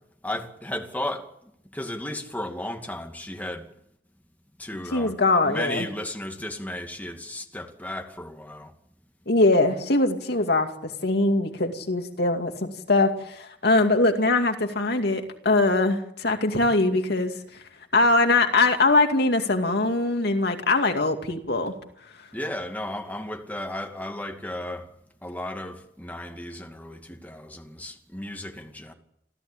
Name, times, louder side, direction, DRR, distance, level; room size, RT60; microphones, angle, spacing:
voice 1, 0.2-1.3 1.6-3.7 4.6-5.1 5.4-8.7 22.3-24.9 25.2-28.9, left 1 dB, 10° left, 2.4 m, -34 dB
voice 2, 4.9-5.9 9.3-17.3 17.9-21.7, left 2 dB, 65° left, 2.4 m, -22 dB
28.0 x 14.5 x 8.8 m
head